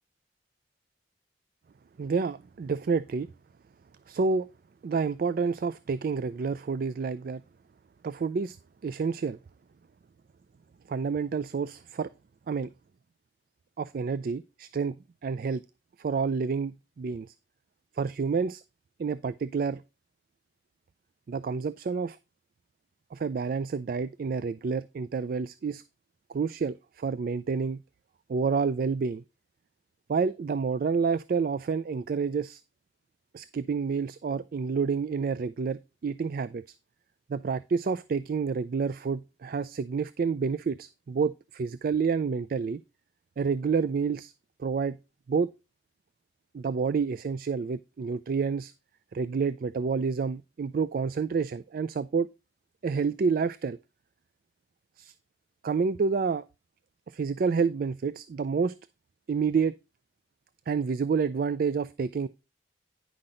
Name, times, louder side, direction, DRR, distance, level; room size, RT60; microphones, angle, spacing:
voice 1, 2.0-3.3 4.1-4.5 4.8-7.4 8.0-8.6 8.8-9.4 10.9-12.1 12.5-12.7 13.8-14.9 15.2-15.6 16.0-17.3 18.0-18.6 19.0-19.8 21.3-22.2 23.1-25.8 26.3-27.8 28.3-29.2 30.1-32.6 33.3-36.6 37.3-42.8 43.4-44.3 44.6-45.0 45.3-45.5 46.5-48.7 49.1-52.3 52.8-53.8 55.0-55.1 55.6-56.4 57.1-58.7 59.3-59.7 60.7-62.3, right 5 dB, 50° right, 0.3 m, -29 dB
9.8 x 5.8 x 3.8 m
head